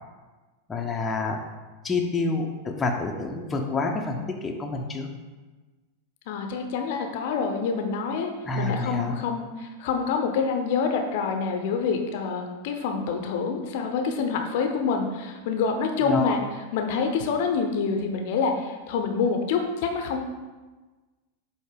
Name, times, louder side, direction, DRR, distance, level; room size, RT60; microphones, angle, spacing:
voice 1, 0.7-1.4 1.8-5.1 8.4-9.1 16.0-16.4, left 3 dB, 15° left, 1 dB, 0.7 m, -28 dB
voice 2, 6.3-8.3 8.6-16.4 16.7-20.2, left 5 dB, 50° left, 4 dB, 0.7 m, -26 dB
7.8 x 2.9 x 4.9 m, 1.3 s
figure-of-eight pair, 90°, 0 cm